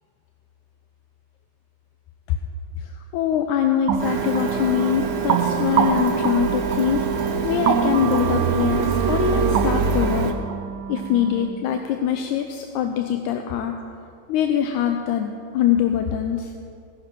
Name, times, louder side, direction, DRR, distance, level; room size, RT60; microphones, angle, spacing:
voice 1, 2.8-10.3 10.9-13.7 14.3-16.5, left 9 dB, 85° left, 5 dB, 2.1 m, -23 dB
sound 1, 3.9-11.5, right 8 dB, 85° right, 2.2 m, -27 dB
Printer, 4.0-10.3, right 5 dB, 55° right, 1.5 m, -24 dB
18.0 x 10.5 x 6.0 m, 2.4 s
omnidirectional pair, 3.4 m